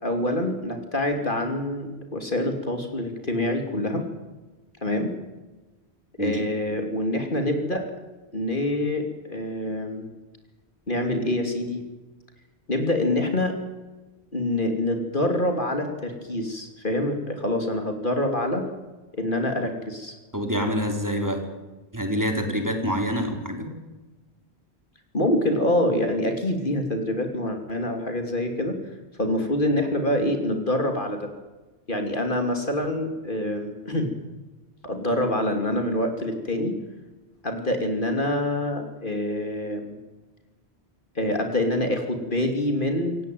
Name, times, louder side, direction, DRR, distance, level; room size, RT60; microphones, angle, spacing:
voice 1, 0.0-4.1 4.8-5.1 6.2-7.8 8.3-10.0 10.9-11.8 12.7-13.6 14.3-18.6 19.2-20.2 25.1-28.8 29.2-31.3 31.9-34.1 34.8-36.7 37.4-40.0 41.1-43.2, left 1 dB, 50° left, 5 dB, 3.1 m, -26 dB
voice 2, 20.3-21.4 21.9-23.7, equal, 15° right, 3 dB, 4.3 m, -26 dB
27.5 x 16.5 x 9.3 m, 1.2 s
omnidirectional pair, 1.1 m